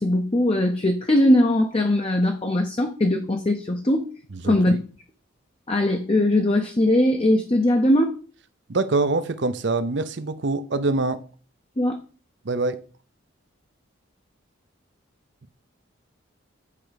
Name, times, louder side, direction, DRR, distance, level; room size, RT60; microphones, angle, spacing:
voice 1, 0.0-4.0 4.4-4.7 5.7-8.2 11.8-12.0, left 1 dB, 30° left, 0.7 m, -20 dB
voice 2, 4.3-4.8 8.7-11.2 12.4-12.8, right 3 dB, 55° right, 0.6 m, -25 dB
8.5 x 4.5 x 5.1 m
head